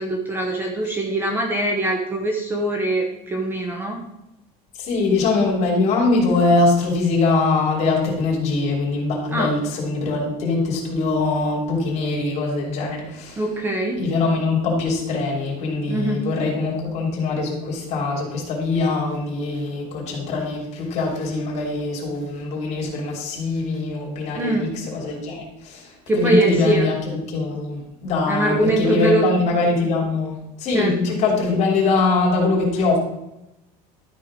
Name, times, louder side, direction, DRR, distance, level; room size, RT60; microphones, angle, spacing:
voice 1, 0.0-4.0 9.3-9.5 13.4-14.0 15.9-16.2 24.3-24.7 26.1-26.9 28.3-29.2 30.7-31.0, right 1 dB, 10° right, 2 dB, 0.9 m, -22 dB
voice 2, 4.8-13.4 14.0-33.0, left 3 dB, 40° left, -1 dB, 3.1 m, -22 dB
12.5 x 4.8 x 5.1 m, 0.89 s
cardioid pair, 165°, 17 cm